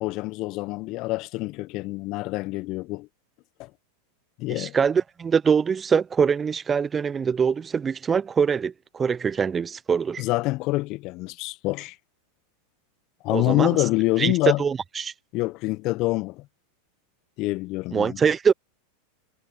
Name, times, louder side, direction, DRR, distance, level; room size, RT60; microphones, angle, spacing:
voice 1, 0.0-3.1 3.6-3.7 4.4-4.8 10.2-12.0 13.2-14.6 15.3-16.5 17.4-18.2, left 21 dB, 45° left, 0.9 m, -26 dB
voice 2, 4.5-10.2 13.3-13.7 14.2-14.3 14.6-15.1 17.9-18.5, right 6 dB, 20° right, 0.6 m, -23 dB
figure-of-eight pair, 90°, 0 cm